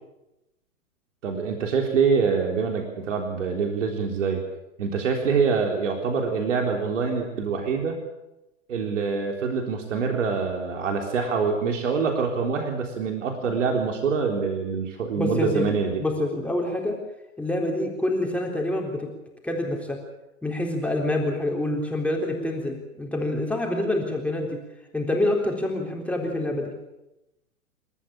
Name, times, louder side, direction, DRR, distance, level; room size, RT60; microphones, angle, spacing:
voice 1, 1.2-4.4 4.8-8.0 8.7-16.0, right 5 dB, 60° right, 3 dB, 3.9 m, -25 dB
voice 2, 15.2-15.7 16.0-17.0 17.4-19.1 19.4-20.0 20.4-24.6 24.9-26.7, left 1 dB, 5° left, 0 dB, 3.8 m, -26 dB
28.5 x 13.5 x 8.8 m, 0.94 s
figure-of-eight pair, 110°, 41 cm